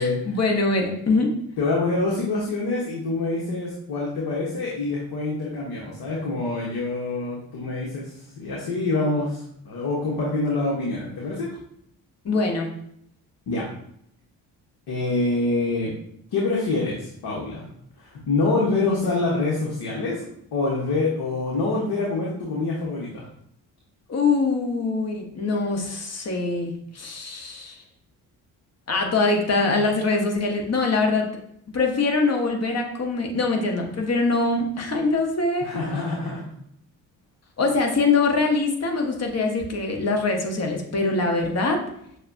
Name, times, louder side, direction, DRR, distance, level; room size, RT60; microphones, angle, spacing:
voice 1, 0.0-1.3 12.2-12.7 18.7-18.8 24.1-27.8 28.9-31.3 31.7-35.8 37.6-41.8, left 3 dB, 35° left, 2 dB, 1.2 m, -23 dB
voice 2, 1.6-11.5 13.5-13.7 14.9-15.9 16.3-17.6 18.0-20.2 20.5-23.2 35.6-36.4, left 3 dB, 55° left, -4 dB, 1.1 m, -26 dB
6.5 x 2.3 x 2.6 m, 0.70 s
hypercardioid pair, 45°, 45 cm